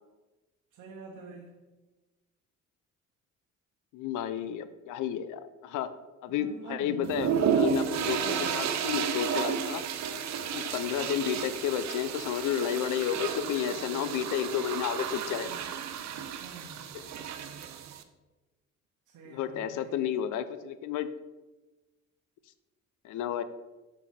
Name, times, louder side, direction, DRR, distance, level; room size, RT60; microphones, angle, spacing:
voice 1, 0.7-1.6 6.3-7.1 8.2-8.5 16.4-16.9 19.1-20.1, right 5 dB, 85° right, 0 dB, 1.0 m, -46 dB
voice 2, 3.9-5.9 6.2-9.8 10.5-15.5 16.9-17.1 19.3-21.1 23.0-23.4, left 9 dB, 90° left, 13 dB, 0.6 m, -32 dB
sound 1, 7.0-18.0, right 7 dB, 65° right, 0.7 m, -32 dB
7.0 x 5.5 x 4.2 m, 1.1 s
cardioid pair, 90°, 30 cm